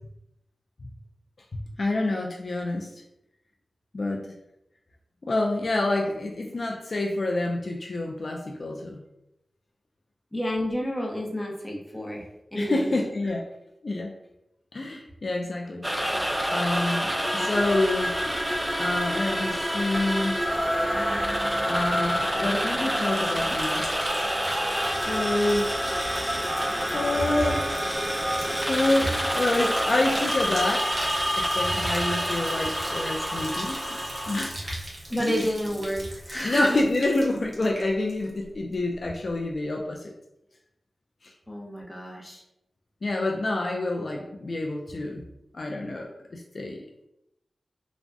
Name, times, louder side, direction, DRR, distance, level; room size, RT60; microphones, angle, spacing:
voice 1, 1.8-2.9 3.9-4.2 5.2-9.0 12.5-13.4 13.8-14.1 14.7-15.8 16.5-18.1 18.8-20.4 21.7-23.9 25.1-25.7 26.9-27.7 28.7-30.9 31.4-34.0 34.3-34.7 35.2-35.4 36.4-40.1 41.2-41.3 43.0-45.2 45.5-46.8, left 2 dB, 60° left, 0 dB, 0.3 m, -27 dB
voice 2, 10.3-12.2 12.5-12.9 35.1-36.8 41.5-42.4, equal, 20° left, -1 dB, 0.8 m, -30 dB
sound 1, 15.8-34.5, equal, 10° right, 0.4 m, -27 dB
Bathtub (filling or washing), 22.4-38.5 38.7-39.3, right 1 dB, 40° right, 0.8 m, -41 dB
3.3 x 2.1 x 2.6 m, 0.86 s
cardioid pair, 45°, 0 cm